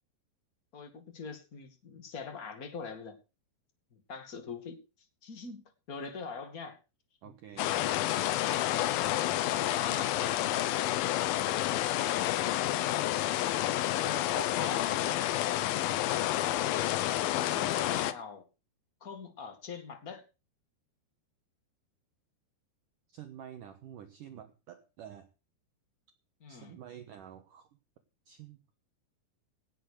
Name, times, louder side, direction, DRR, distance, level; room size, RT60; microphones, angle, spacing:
voice 1, 0.7-3.2 3.9-4.8 5.2-6.8 7.2-7.7 9.7-10.9 14.0-15.2 17.4-18.4 19.0-20.2 26.4-26.8, left 5 dB, 30° left, 1.7 m, -43 dB
voice 2, 7.2-7.8 23.1-25.3 26.5-27.7 28.3-28.6, right 10 dB, 65° right, 2.4 m, -49 dB
sound 1, 7.6-18.1, left 14 dB, 75° left, 2.3 m, -29 dB
18.0 x 6.7 x 6.6 m
omnidirectional pair, 4.9 m